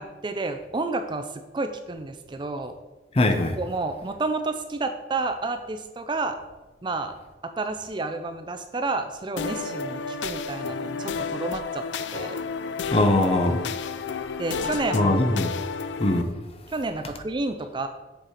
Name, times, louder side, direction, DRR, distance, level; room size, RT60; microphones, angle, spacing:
voice 1, 0.0-2.7 3.6-6.4 6.8-7.1 7.6-11.8 12.1-12.4 14.4-15.2 16.7-17.9, right 3 dB, 25° right, 0.4 m, -30 dB
voice 2, 3.1-3.6 12.9-13.6 14.9-15.5 16.0-16.3, left 1 dB, 30° left, 0.7 m, -21 dB
sound 1, 9.4-16.2, left 5 dB, 70° left, 0.4 m, -31 dB
7.4 x 4.5 x 4.9 m
head